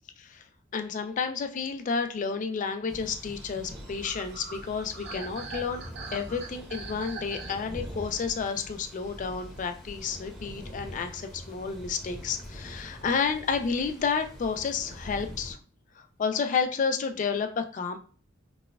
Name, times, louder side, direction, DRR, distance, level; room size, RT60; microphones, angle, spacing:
voice 1, 0.7-5.8 6.1-15.6 16.0-18.0, left 5 dB, 40° left, 7 dB, 0.3 m, -31 dB
sound 1, 2.9-15.5, equal, ahead, 0.8 m, -44 dB
sound 2, 3.1-9.6 10.0-11.4 11.7-12.3, right 4 dB, 55° right, 0.5 m, -45 dB
4.1 x 2.2 x 2.3 m, 0.40 s
head